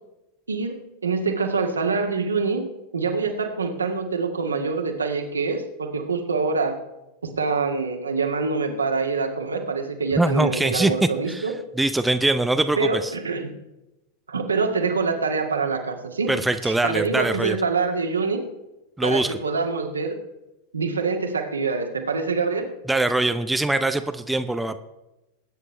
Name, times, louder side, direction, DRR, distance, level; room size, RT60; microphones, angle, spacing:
voice 1, 0.5-2.7 2.9-6.8 7.2-11.5 12.8-13.5 14.3-16.3 16.6-18.4 19.0-20.2 20.7-22.7, right 4 dB, 75° right, 3 dB, 2.0 m, -25 dB
voice 2, 10.2-11.4 11.8-13.1 16.3-17.6 19.0-19.4 22.9-24.8, right 2 dB, 5° right, 9 dB, 0.7 m, -22 dB
20.5 x 9.6 x 3.4 m, 0.96 s
figure-of-eight pair, 90°, 0 cm